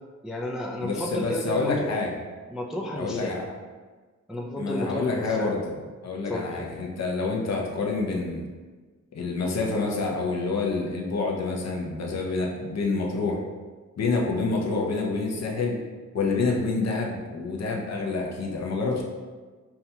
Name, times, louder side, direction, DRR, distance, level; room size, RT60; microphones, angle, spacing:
voice 1, 0.2-1.9 2.5-3.3 4.3-5.5 6.3-6.6, left 1 dB, ahead, -2 dB, 0.3 m, -32 dB
voice 2, 0.8-2.2 3.0-3.6 4.6-5.7 6.0-8.4 9.1-13.4 14.0-15.8 16.1-19.0, left 3 dB, 60° left, 0 dB, 0.7 m, -27 dB
5.6 x 2.3 x 2.8 m, 1.4 s
wide cardioid pair, 135°, 29 cm